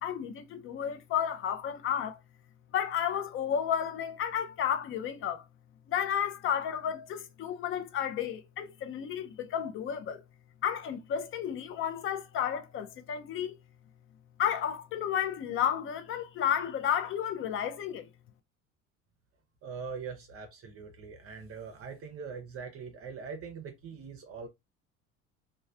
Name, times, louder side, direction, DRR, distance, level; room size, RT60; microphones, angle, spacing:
voice 1, 0.0-2.2 2.7-5.4 5.9-10.2 10.6-13.6 14.4-18.1, left 9 dB, 30° left, 0.5 m, -32 dB
voice 2, 19.6-24.5, right 5 dB, 35° right, 0.6 m, -42 dB
3.1 x 2.2 x 2.3 m
figure-of-eight pair, 60°, 40 cm